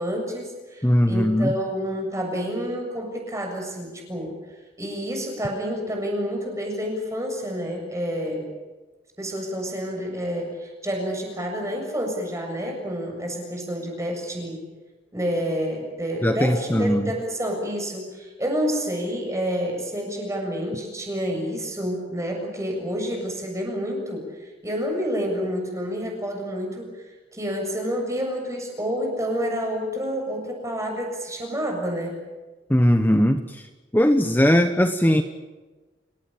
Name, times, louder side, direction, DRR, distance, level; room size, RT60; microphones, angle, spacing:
voice 1, 0.0-4.3 4.8-8.5 9.2-14.6 15.1-26.9 27.3-32.2, equal, 15° right, 2 dB, 7.2 m, -29 dB
voice 2, 0.8-1.5 16.2-17.1 32.7-33.6 33.9-35.2, equal, 10° left, 7 dB, 1.1 m, -19 dB
29.5 x 17.5 x 8.8 m, 1.2 s
head